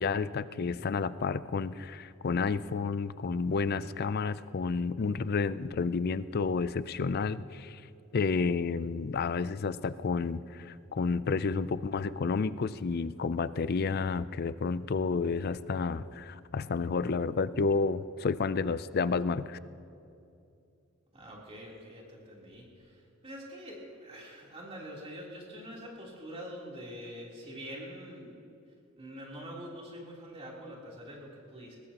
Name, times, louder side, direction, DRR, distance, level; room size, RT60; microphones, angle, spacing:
voice 1, 0.0-7.8 8.1-19.6, left 4 dB, 50° left, 15 dB, 0.4 m, -30 dB
voice 2, 21.1-28.3 29.0-31.8, equal, 30° right, -4 dB, 3.4 m, -45 dB
22.0 x 19.5 x 3.0 m, 2.6 s
head